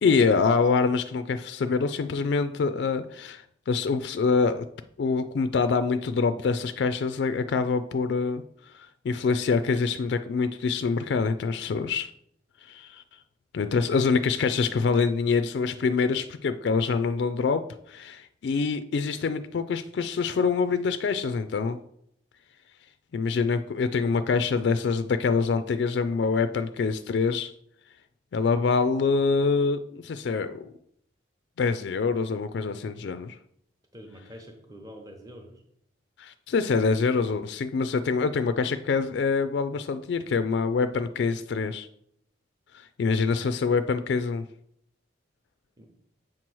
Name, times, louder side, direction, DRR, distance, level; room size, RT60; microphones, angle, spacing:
voice 1, 0.0-4.7 5.0-8.4 8.7-12.1 12.6-13.0 13.5-17.6 17.9-21.8 23.1-27.5 28.3-30.7 31.6-33.4 36.2-41.9 42.7-44.4, left 4 dB, 60° left, 10 dB, 0.3 m, -25 dB
voice 2, 33.9-35.6 45.8-45.9, equal, 20° right, 1 dB, 0.7 m, -45 dB
7.5 x 3.0 x 6.1 m, 0.72 s
head